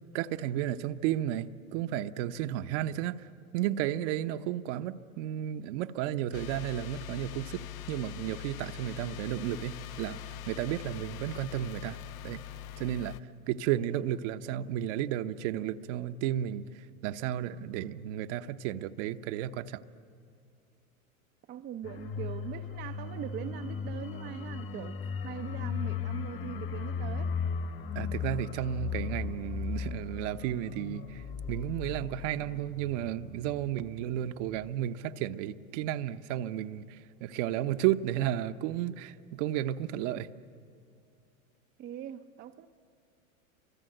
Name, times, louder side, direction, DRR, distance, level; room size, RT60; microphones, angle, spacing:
voice 1, 0.1-3.2 3.5-7.6 7.9-10.2 10.5-12.0 12.2-12.4 12.8-13.2 13.5-16.7 17.0-19.8 27.9-40.3, right 12 dB, 55° right, 1.0 m, -33 dB
sound 1, 6.3-13.2, left 11 dB, 75° left, 1.0 m, -43 dB
voice 2, 21.5-27.3 41.8-42.7, right 10 dB, 25° right, 0.6 m, -42 dB
sound 2, 21.8-34.2 34.5-34.7, left 6 dB, 30° left, 1.3 m, -37 dB
29.0 x 25.0 x 7.9 m
hypercardioid pair, 115°, 42 cm